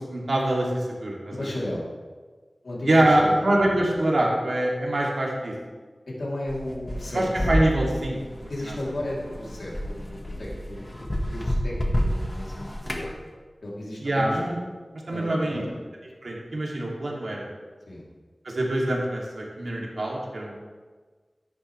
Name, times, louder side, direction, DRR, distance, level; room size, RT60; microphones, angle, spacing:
voice 1, 0.0-1.5 2.9-5.5 7.1-8.5 14.0-14.6 15.1-15.6 16.2-17.5 18.4-20.6, right 1 dB, 70° right, -3 dB, 2.8 m, -24 dB
voice 2, 1.3-1.9 2.6-3.5 6.1-7.5 8.5-13.2 13.6-14.4 15.1-15.8 17.9-18.0, left 1 dB, 80° left, -5 dB, 3.4 m, -34 dB
sound 1, 6.5-13.1, equal, 25° left, 1.7 m, -29 dB
13.5 x 11.0 x 3.4 m, 1.4 s
wide cardioid pair, 65°, 0 cm